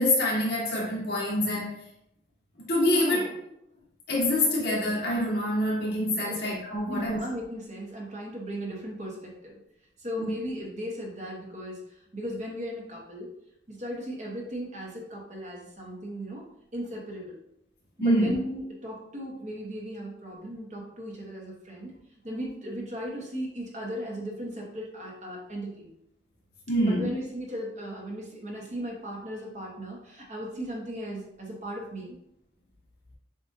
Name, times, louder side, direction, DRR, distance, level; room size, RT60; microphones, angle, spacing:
voice 1, 0.0-1.8 2.7-3.2 4.1-7.2 10.2-10.3 18.0-18.4 26.7-27.1, left 1 dB, 55° left, -4 dB, 1.5 m, -25 dB
voice 2, 2.8-3.3 6.2-6.4 6.9-9.6 10.0-13.3 13.7-17.4 18.0-21.9 22.2-25.9 26.8-32.2, equal, 40° right, -2 dB, 1.1 m, -37 dB
7.2 x 2.5 x 2.7 m, 0.78 s
head